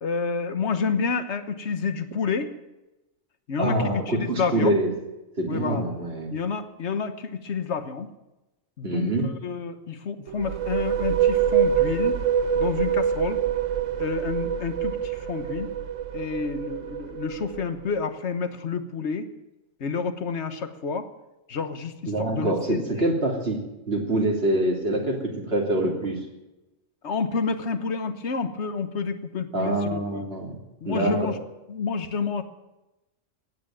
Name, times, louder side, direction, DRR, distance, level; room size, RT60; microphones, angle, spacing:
voice 1, 0.0-2.5 3.5-4.8 5.5-5.8 6.3-8.1 8.8-12.2 12.5-13.4 14.0-15.7 16.1-19.3 19.8-21.1 21.5-22.8 27.0-30.3 30.8-31.4 31.7-32.4, left 5 dB, 65° left, 10 dB, 1.4 m, -29 dB
voice 2, 3.6-4.9 5.4-6.3 8.8-9.3 22.1-23.6 23.9-26.2 29.5-30.6 30.8-31.3, right 1 dB, 55° right, 0 dB, 3.3 m, -25 dB
sound 1, 10.3-17.9, right 9 dB, 85° right, 1.1 m, -25 dB
15.5 x 10.0 x 8.9 m, 1.0 s
omnidirectional pair, 1.3 m